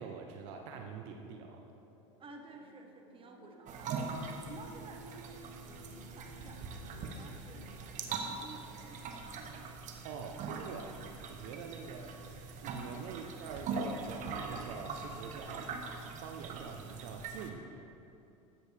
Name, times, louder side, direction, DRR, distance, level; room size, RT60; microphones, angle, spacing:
voice 1, 0.0-1.6 10.0-10.9 11.3-12.1 12.6-15.7 16.2-17.9, right 6 dB, 70° right, 3 dB, 0.9 m, -45 dB
sound 1, 1.0-11.7 12.6-12.7, equal, 75° left, 1.4 m, -58 dB
voice 2, 2.2-9.7 10.4-10.6 11.8-11.9 13.1-13.3, right 3 dB, 30° right, 3 dB, 1.4 m, -54 dB
sound 2, 3.7-17.5, right 4 dB, 50° right, 1.2 m, -42 dB
13.5 x 9.0 x 3.5 m, 2.7 s
hypercardioid pair, 90°, 17 cm